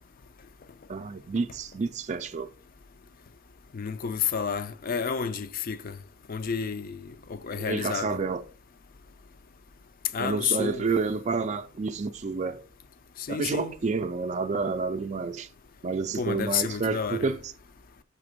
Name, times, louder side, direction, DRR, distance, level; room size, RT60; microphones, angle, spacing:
voice 1, 0.9-2.5 7.6-8.5 10.2-12.6 13.3-15.5 15.8-17.5, right 4 dB, 35° right, 0.4 m, -29 dB
voice 2, 3.7-6.0 6.3-8.2 10.1-10.8 13.2-13.7 16.1-17.3, left 7 dB, 45° left, 0.5 m, -30 dB
6.7 x 3.4 x 5.0 m
head